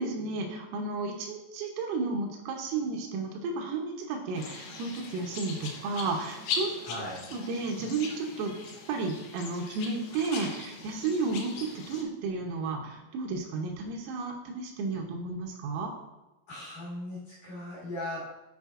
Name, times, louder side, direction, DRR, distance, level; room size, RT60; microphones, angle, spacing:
voice 1, 0.0-6.8 7.3-8.5 8.9-15.9, right 3 dB, 80° right, 2 dB, 3.5 m, -32 dB
sound 1, 4.3-12.0, left 4 dB, 75° left, 2.3 m, -40 dB
voice 2, 6.8-7.2 16.5-18.3, left 1 dB, 60° left, -8 dB, 2.4 m, -38 dB
11.0 x 4.9 x 2.5 m, 1.0 s
omnidirectional pair, 5.9 m